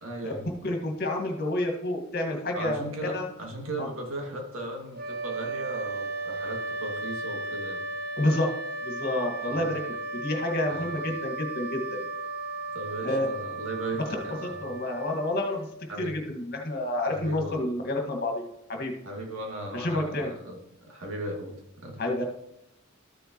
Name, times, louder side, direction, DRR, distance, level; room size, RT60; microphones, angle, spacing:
voice 1, 0.0-0.5 2.5-7.8 9.5-9.7 10.7-10.9 12.7-14.7 15.9-16.2 17.1-17.6 19.0-22.0, right 1 dB, 85° right, 0 dB, 2.5 m, -37 dB
voice 2, 0.6-2.9 3.1-3.3 3.8-3.9 8.2-8.5 8.8-12.0 13.0-13.3 14.6-15.7 16.0-18.9 19.7-20.3 22.0-22.2, left 1 dB, 50° left, 2 dB, 2.0 m, -29 dB
sound 1, 4.9-15.9, right 2 dB, 50° right, 1.1 m, -35 dB
13.5 x 6.7 x 3.2 m, 0.81 s
head